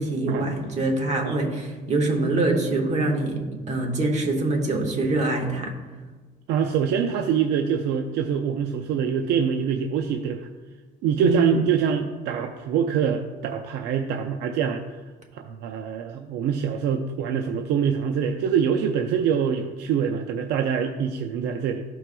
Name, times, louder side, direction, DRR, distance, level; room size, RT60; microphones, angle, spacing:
voice 1, 0.0-3.4 3.7-5.7 11.2-11.6, right 2 dB, 40° right, 1 dB, 1.5 m, -24 dB
voice 2, 6.5-10.5 11.0-15.0 15.3-21.8, right 7 dB, 85° right, 5 dB, 0.5 m, -25 dB
13.5 x 4.5 x 2.3 m, 1.3 s
cardioid pair, 110°, 17 cm